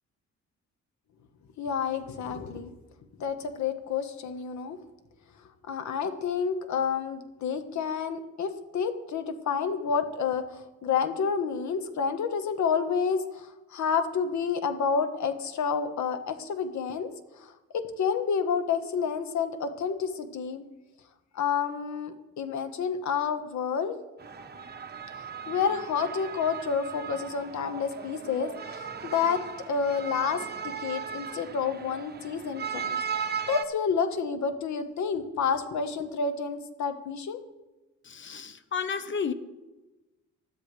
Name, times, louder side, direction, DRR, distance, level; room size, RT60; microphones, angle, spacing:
voice 1, 1.6-2.7 3.2-4.8 5.7-17.1 17.4-20.6 21.3-24.0 25.5-37.4, left 6 dB, 65° left, 1.5 m, -29 dB
sound 1, 24.2-33.6, right 7 dB, 35° right, 1.2 m, -37 dB
voice 2, 38.0-39.3, left 6 dB, 40° left, 1.1 m, -32 dB
20.0 x 13.0 x 3.4 m
cardioid pair, 90°, 30 cm